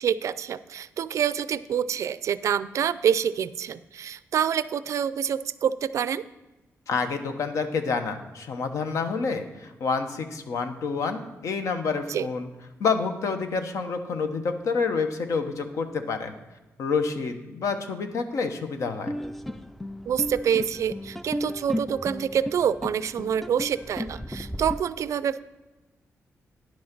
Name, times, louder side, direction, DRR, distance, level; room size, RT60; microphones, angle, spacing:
voice 1, 0.0-6.2 12.1-12.3 20.1-25.4, right 8 dB, 75° right, 16 dB, 0.4 m, -26 dB
voice 2, 6.9-12.5 12.8-16.3 16.8-19.1, left 5 dB, 75° left, 7 dB, 1.0 m, -28 dB
sound 1, 19.1-24.8, left 1 dB, 5° left, 0.3 m, -34 dB
10.0 x 6.3 x 5.9 m, 1.1 s
wide cardioid pair, 120°, 5 cm